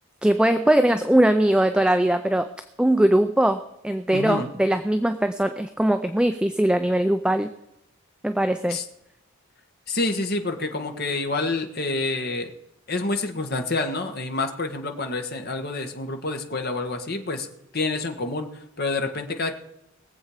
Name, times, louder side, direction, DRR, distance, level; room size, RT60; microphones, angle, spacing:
voice 1, 0.2-2.5 2.8-7.5 8.2-8.8, right 1 dB, 5° right, 8 dB, 0.4 m, -21 dB
voice 2, 4.1-4.5 8.7-8.9 9.9-12.5 12.9-17.5 17.7-19.6, left 3 dB, 45° left, 4 dB, 1.4 m, -28 dB
21.5 x 7.8 x 5.0 m, 0.83 s
head